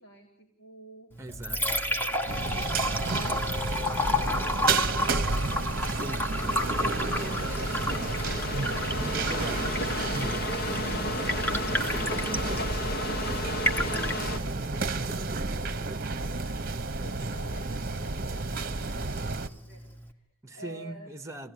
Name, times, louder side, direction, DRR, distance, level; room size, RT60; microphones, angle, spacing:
voice 1, 0.0-1.1 1.5-5.8 8.6-9.4 11.7-20.3 20.5-21.1, equal, 70° left, 3.7 m, -50 dB
Liquid, 1.1-20.1, left 1 dB, 10° left, 1.6 m, -33 dB
voice 2, 1.2-1.6 5.6-7.0 7.4-7.9 8.4-10.8 20.4-21.5, right 1 dB, 15° right, 1.2 m, -42 dB
sound 1, 2.3-19.5, right 3 dB, 45° right, 1.0 m, -31 dB
sound 2, 6.1-14.4, left 1 dB, 45° left, 1.5 m, -34 dB
26.5 x 17.0 x 9.5 m
head